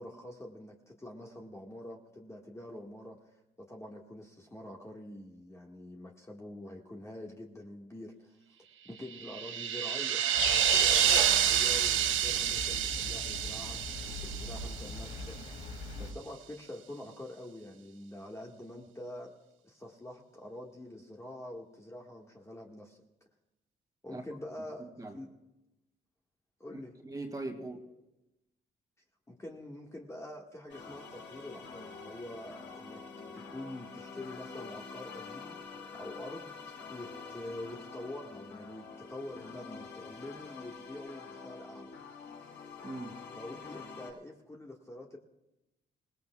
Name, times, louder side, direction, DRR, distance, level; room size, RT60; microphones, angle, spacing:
voice 1, 0.0-3.2 3.6-8.4 8.8-13.8 14.1-19.3 19.6-23.0 24.0-25.3 26.6-27.0 29.3-33.0 33.3-35.6 35.9-41.9 43.3-45.2, left 1 dB, 15° left, -1 dB, 1.6 m, -46 dB
sound 1, 9.1-15.3, right 10 dB, 80° right, 0.7 m, -29 dB
sound 2, 10.3-16.1, left 3 dB, 85° left, 2.3 m, -39 dB
voice 2, 24.8-25.2 26.7-27.8 42.8-43.2, right 2 dB, 20° right, 4 dB, 2.2 m, -41 dB
sound 3, 30.7-44.1, left 5 dB, 70° left, 5.7 m, -47 dB
27.0 x 18.0 x 2.3 m, 0.97 s
cardioid pair, 90°, 20 cm